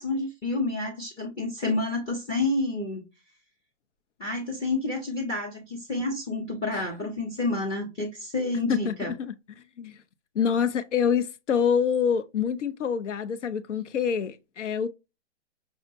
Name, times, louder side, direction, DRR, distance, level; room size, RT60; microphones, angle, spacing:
voice 1, 0.0-3.1 4.2-9.1, left 2 dB, 15° left, 0.6 m, -29 dB
voice 2, 8.7-9.3 9.8-10.0 10.3-14.9, left 7 dB, 80° left, 0.6 m, -26 dB
5.5 x 2.1 x 2.6 m
hypercardioid pair, 140°, 36 cm